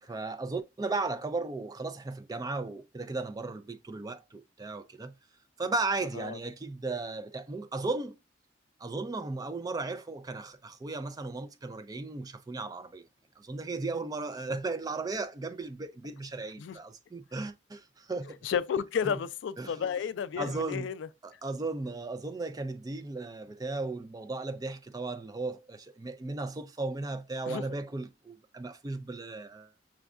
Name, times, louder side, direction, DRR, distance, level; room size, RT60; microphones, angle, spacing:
voice 1, 0.0-5.1 5.6-8.2 8.8-13.0 13.4-18.4 19.1-19.2 19.6-19.9 20.4-20.9 21.2-29.7, right 3 dB, 20° right, 0.3 m, -36 dB
voice 2, 18.4-21.1 27.5-27.6, left 7 dB, 80° left, 0.3 m, -32 dB
6.0 x 2.2 x 2.4 m
head